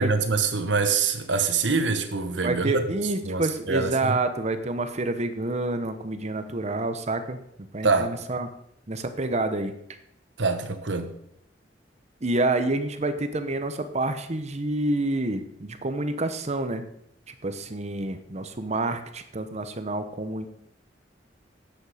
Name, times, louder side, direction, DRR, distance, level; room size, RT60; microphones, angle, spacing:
voice 1, 0.0-2.8 3.2-4.1 7.8-8.1 10.4-11.1, right 4 dB, 85° right, 1.2 m, -25 dB
voice 2, 2.4-7.4 7.7-8.5 8.9-9.7 12.2-16.8 17.3-20.5, right 2 dB, 40° right, 0.9 m, -28 dB
10.5 x 8.3 x 4.9 m
head